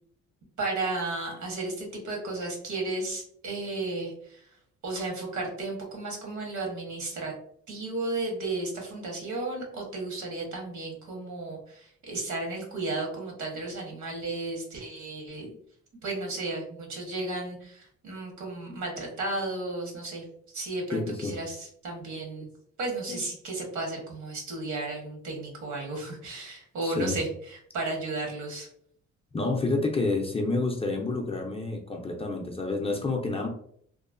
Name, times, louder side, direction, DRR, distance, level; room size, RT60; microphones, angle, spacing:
voice 1, 0.6-4.5 4.8-7.3 7.7-15.5 16.0-20.2 20.5-22.5 22.8-28.7, right 2 dB, 70° right, 0 dB, 1.2 m, -34 dB
voice 2, 20.9-21.4 23.1-23.2 26.8-27.2 29.3-33.5, left 3 dB, 20° left, 2 dB, 0.4 m, -29 dB
3.0 x 2.1 x 2.4 m, 0.64 s
cardioid pair, 90°, 30 cm